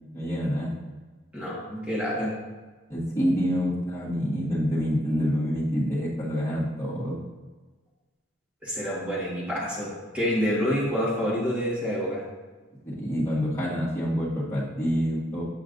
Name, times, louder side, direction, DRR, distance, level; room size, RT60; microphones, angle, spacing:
voice 1, 0.1-0.8 2.9-7.2 12.8-15.4, equal, 15° left, -10 dB, 1.8 m, -27 dB
voice 2, 1.3-2.3 8.6-12.2, equal, 5° right, -6 dB, 1.7 m, -27 dB
8.5 x 5.6 x 2.6 m, 1.3 s
head